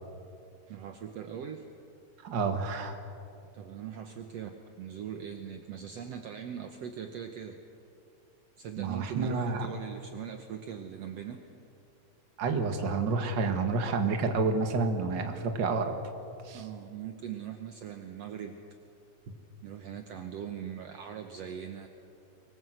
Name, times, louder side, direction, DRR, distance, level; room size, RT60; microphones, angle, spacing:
voice 1, 0.7-1.6 3.5-4.5 4.8-7.6 8.6-11.5 16.5-18.6 19.6-21.9, right 8 dB, 65° right, 5 dB, 1.9 m, -40 dB
voice 2, 2.2-3.0 8.8-9.7 12.4-15.9 16.5-16.6, right 4 dB, 45° right, 6 dB, 2.0 m, -29 dB
24.5 x 20.5 x 7.9 m, 2.6 s
omnidirectional pair, 3.5 m